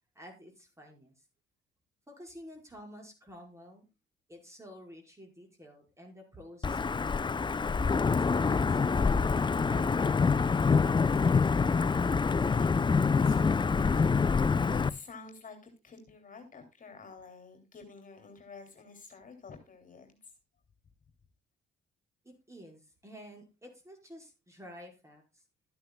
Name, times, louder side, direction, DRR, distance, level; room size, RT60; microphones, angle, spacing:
voice 1, 0.2-1.1 2.1-3.9 4.3-7.4 8.1-10.9 22.2-25.4, equal, 15° right, 2 dB, 5.5 m, -51 dB
Wind / Thunder / Rain, 6.6-14.9, left 5 dB, 25° left, 0.6 m, -26 dB
voice 2, 12.5-20.3, left 5 dB, 40° left, 5 dB, 3.1 m, -49 dB
13.5 x 9.5 x 2.3 m, 0.28 s
cardioid pair, 90°, 20 cm